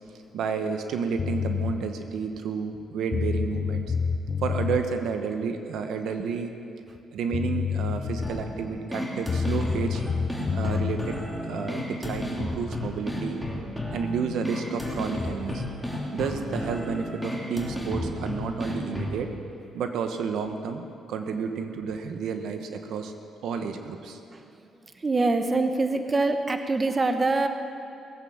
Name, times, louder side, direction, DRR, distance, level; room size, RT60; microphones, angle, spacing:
voice 1, 0.3-3.9 4.4-6.6 7.1-10.0 10.5-13.4 13.9-15.6 16.1-19.3 19.7-23.1 23.4-24.2, right 6 dB, 80° right, 6 dB, 1.1 m, -31 dB
sound 1, 1.2-1.8 2.8-2.9 3.1-4.8 7.0-7.1 7.3-8.5 9.3-11.0, left 6 dB, 45° left, 0.8 m, -28 dB
sound 2, 8.2-19.2, left 1 dB, ahead, 3.0 m, -32 dB
voice 2, 24.3-24.7 24.9-27.5, right 3 dB, 30° right, 7 dB, 1.0 m, -25 dB
18.5 x 8.6 x 7.2 m, 2.6 s
cardioid pair, 90°, 0 cm